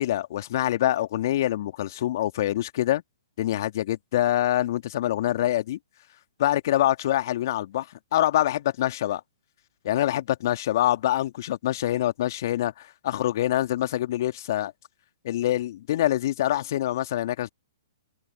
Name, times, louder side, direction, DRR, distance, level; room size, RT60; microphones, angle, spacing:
voice 1, 0.0-3.0 3.4-5.8 6.4-9.2 9.8-14.7 15.2-17.5, left 13 dB, 50° left, 2.0 m, -25 dB
open air
figure-of-eight pair, 120°, 2 cm